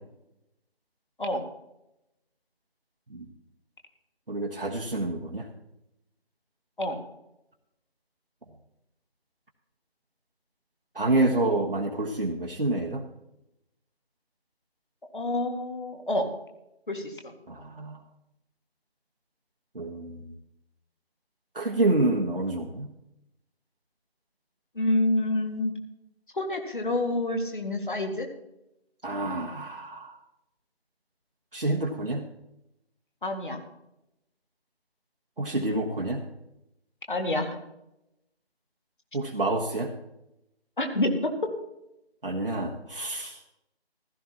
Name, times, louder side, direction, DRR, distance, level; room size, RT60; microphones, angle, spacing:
voice 1, 4.3-5.5 10.9-13.0 17.5-18.0 19.7-20.3 21.5-22.9 29.0-30.2 31.5-32.2 35.4-36.2 39.1-39.9 42.2-43.4, right 2 dB, 60° right, 0 dB, 1.5 m, -28 dB
voice 2, 15.1-16.3 16.9-17.3 24.8-25.7 26.3-28.3 33.2-33.6 37.1-37.6 40.8-41.5, left 1 dB, 50° left, 4 dB, 2.0 m, -28 dB
15.0 x 13.5 x 2.9 m, 0.86 s
figure-of-eight pair, 165°, 32 cm